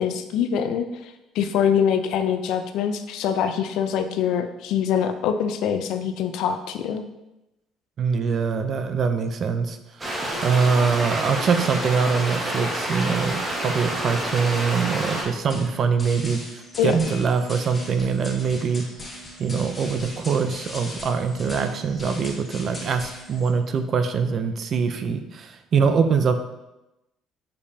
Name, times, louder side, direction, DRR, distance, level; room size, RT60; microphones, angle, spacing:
voice 1, 0.0-7.0 16.8-17.0, left 8 dB, 70° left, 8 dB, 0.5 m, -24 dB
voice 2, 8.0-16.4 16.8-18.9 19.4-26.4, right 5 dB, 45° right, 8 dB, 0.5 m, -23 dB
sound 1, 10.0-15.2, right 1 dB, 20° right, 1.4 m, -28 dB
sound 2, 15.5-23.5, left 1 dB, 20° left, 1.8 m, -39 dB
6.7 x 5.2 x 2.8 m, 0.95 s
cardioid pair, 130°, 0 cm